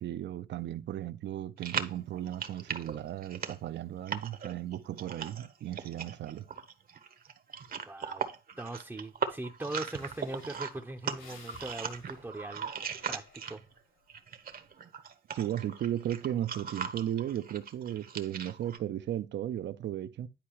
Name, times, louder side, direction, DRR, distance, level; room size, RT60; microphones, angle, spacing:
voice 1, 0.0-6.5 15.3-20.3, right 11 dB, 65° right, 0.6 m, -35 dB
sound 1, 1.6-13.8 14.1-18.8, right 6 dB, 45° right, 0.9 m, -39 dB
voice 2, 7.9-8.2 8.6-12.7 13.1-13.6, right 2 dB, 10° right, 0.7 m, -40 dB
Breathing, 9.3-9.4 9.6-13.9 14.3-14.7, left 4 dB, 80° left, 3.9 m, -57 dB
10.5 x 4.6 x 2.9 m
cardioid pair, 90°, 20 cm